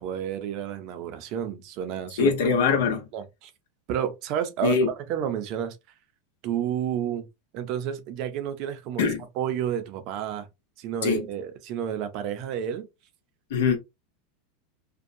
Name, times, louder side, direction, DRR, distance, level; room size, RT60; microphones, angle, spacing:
voice 1, 0.0-2.3 3.1-3.5 3.9-5.8 6.4-7.3 7.5-9.1 9.4-10.5 10.8-12.9, right 9 dB, 50° right, 0.5 m, -30 dB
voice 2, 2.2-3.1 4.6-4.9 9.0-9.2 11.0-11.2 13.5-13.8, left 5 dB, 75° left, 0.9 m, -22 dB
2.6 x 2.2 x 2.6 m
supercardioid pair, 140°, 0 cm